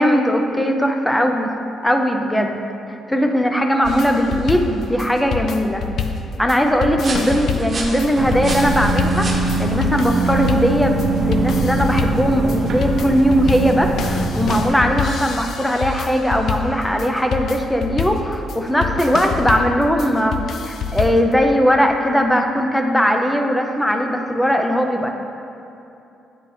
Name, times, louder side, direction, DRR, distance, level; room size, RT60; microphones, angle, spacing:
voice 1, 0.0-1.5 1.8-2.6 3.1-5.8 6.4-25.1, equal, 5° left, 3 dB, 0.6 m, -19 dB
sound 1, 3.8-21.3, left 5 dB, 65° left, 0.4 m, -27 dB
sound 2, 4.7-12.0, right 2 dB, 40° right, 1.0 m, -33 dB
sound 3, 8.1-14.7, right 3 dB, 65° right, 0.7 m, -22 dB
9.4 x 4.3 x 3.3 m, 2.8 s
cardioid pair, 90°, 0 cm